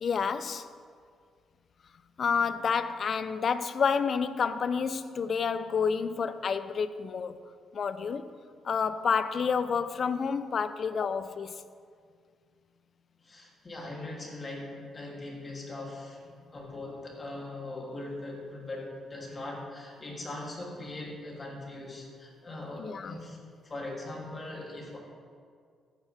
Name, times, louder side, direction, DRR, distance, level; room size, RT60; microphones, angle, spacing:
voice 1, 0.0-0.7 2.2-7.4 7.7-8.3 8.6-11.6 22.8-23.2, left 6 dB, 50° left, 13 dB, 0.5 m, -29 dB
voice 2, 13.2-23.4 23.6-25.0, left 2 dB, 35° left, -2 dB, 3.0 m, -40 dB
13.5 x 9.9 x 3.5 m, 2.1 s
cardioid pair, 85°, 0 cm